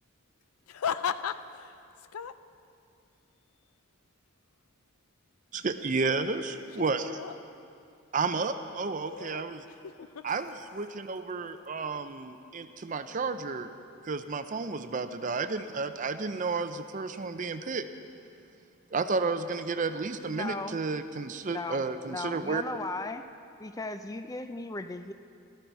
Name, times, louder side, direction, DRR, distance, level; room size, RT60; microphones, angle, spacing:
voice 1, 0.7-2.4 6.8-7.4 9.0-10.4, left 7 dB, 90° left, 13 dB, 0.5 m, -36 dB
voice 2, 5.5-7.2 8.1-9.6 10.2-13.7 14.0-17.9 18.9-22.6, right 4 dB, 35° right, 10 dB, 0.5 m, -32 dB
voice 3, 20.3-20.8 21.5-23.2 23.6-25.1, left 2 dB, 15° left, 9 dB, 0.4 m, -37 dB
15.0 x 14.0 x 4.6 m, 2.6 s
head